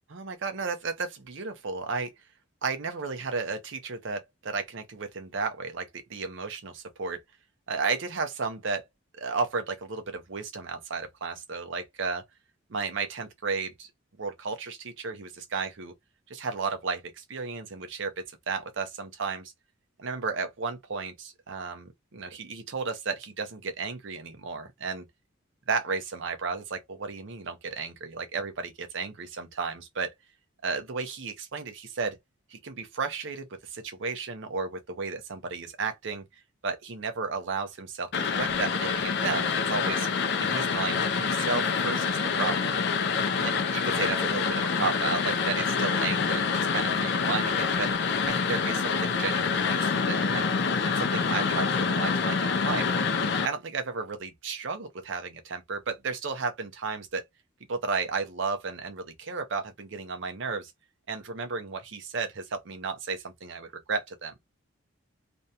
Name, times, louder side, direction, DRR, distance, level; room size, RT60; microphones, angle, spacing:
voice 1, 0.1-2.1 2.6-7.2 7.7-8.8 9.1-12.2 12.7-13.9 14.2-15.9 16.3-19.5 20.0-25.1 25.7-30.1 30.6-32.2 32.5-36.2 36.6-40.1 40.4-42.8 43.4-47.9 48.3-50.5 50.8-52.9 53.4-57.3 57.7-60.7 61.1-64.3, right 4 dB, 60° right, 0.6 m, -33 dB
sound 1, 38.1-53.5, left 5 dB, 55° left, 0.4 m, -26 dB
2.6 x 2.2 x 2.7 m
head